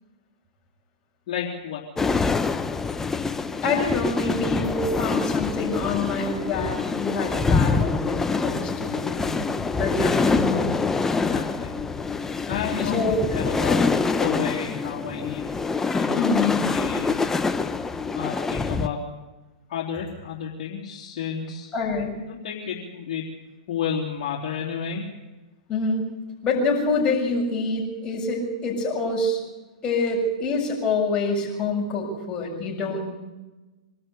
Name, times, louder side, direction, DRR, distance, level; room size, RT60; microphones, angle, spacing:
voice 1, 1.3-1.9 10.3-10.7 11.2-11.8 12.5-13.9 14.2-15.5 15.9-17.1 18.2-19.0 19.7-21.7 22.3-23.3 23.7-25.0, left 7 dB, 55° left, -4 dB, 3.5 m, -31 dB
sound 1, 2.0-18.9, left 4 dB, 10° left, 1.0 m, -25 dB
voice 2, 3.6-9.4 9.8-10.6 12.9-13.2 16.1-16.6 21.7-22.2 25.7-26.1 26.4-29.4 29.8-33.1, left 3 dB, 25° left, -1 dB, 7.2 m, -26 dB
24.5 x 13.0 x 8.4 m, 1.1 s
hypercardioid pair, 115°, 4 cm